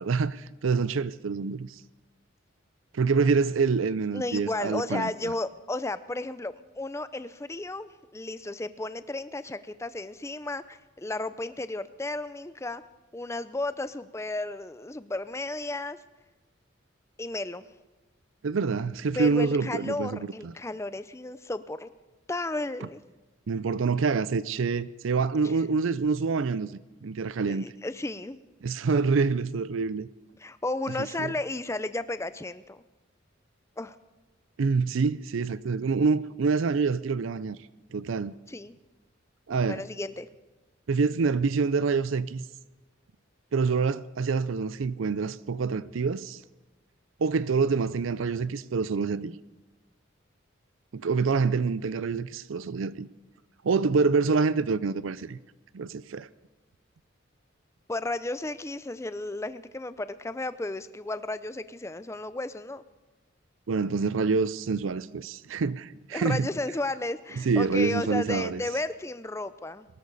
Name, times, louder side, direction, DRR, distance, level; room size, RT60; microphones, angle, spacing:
voice 1, 0.0-1.8 2.9-5.3 18.4-20.5 23.5-26.7 27.0-27.7 28.6-30.1 31.2-31.3 34.6-37.6 37.9-38.4 39.5-39.8 40.9-42.4 43.5-46.4 47.2-49.4 50.9-53.1 53.6-55.4 55.7-56.3 63.7-66.5 67.4-68.6, right 4 dB, 75° right, 0.5 m, -26 dB
voice 2, 4.1-12.8 13.1-16.0 17.2-17.6 19.1-21.9 22.3-23.0 27.4-28.4 30.4-32.8 33.8-34.0 38.5-38.8 39.7-40.3 57.9-62.8 66.1-69.9, left 2 dB, 15° left, 0.5 m, -33 dB
22.5 x 13.0 x 4.1 m
head